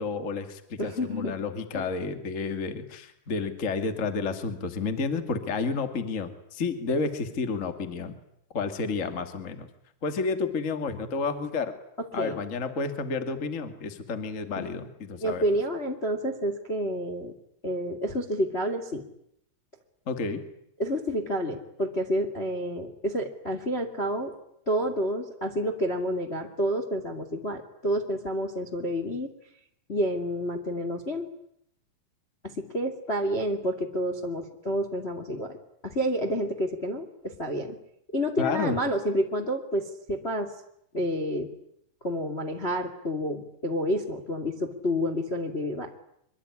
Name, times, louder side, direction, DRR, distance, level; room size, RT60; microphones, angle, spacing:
voice 1, 0.0-8.1 8.5-9.7 10.0-11.7 12.1-15.4 20.0-20.4 38.4-38.8, left 4 dB, 80° left, 8 dB, 0.7 m, -30 dB
voice 2, 0.8-1.3 1.7-1.9 12.2-12.4 14.5-14.9 15.2-17.3 17.6-19.0 20.8-24.3 24.6-29.3 29.9-31.2 32.4-35.6 35.8-37.8 38.1-40.5 40.9-41.5 42.0-45.9, equal, 35° left, 6 dB, 0.9 m, -29 dB
25.0 x 24.0 x 9.8 m, 0.75 s
omnidirectional pair, 5.9 m